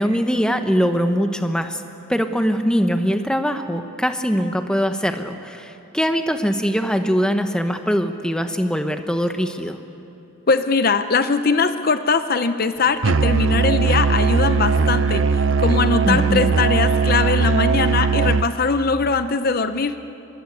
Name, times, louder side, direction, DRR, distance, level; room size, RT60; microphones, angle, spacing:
voice 1, 0.0-1.8 2.1-9.8 16.1-16.4, equal, 5° left, 6 dB, 1.1 m, -22 dB
voice 2, 10.5-20.0, left 4 dB, 45° left, 10 dB, 0.7 m, -21 dB
Musical instrument, 13.0-18.5, right 4 dB, 65° right, 0.6 m, -19 dB
25.5 x 23.5 x 8.5 m, 2.8 s
head